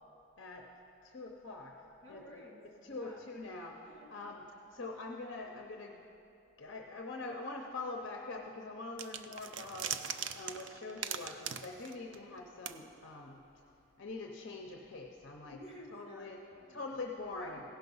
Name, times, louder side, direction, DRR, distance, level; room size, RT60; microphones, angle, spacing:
voice 1, 1.0-1.8 2.1-2.4 2.8-6.0 6.6-10.0 10.3-13.4 14.0-15.6 15.9-16.4 16.7-17.6, left 3 dB, 60° left, 1 dB, 0.7 m, -44 dB
voice 2, 2.0-3.2 3.9-4.1 15.5-16.8 17.4-17.6, equal, 85° right, -3 dB, 2.7 m, -52 dB
sound 1, 9.0-12.4 12.7-12.8, right 8 dB, 60° right, 0.4 m, -40 dB
16.5 x 5.8 x 5.4 m, 2.8 s
head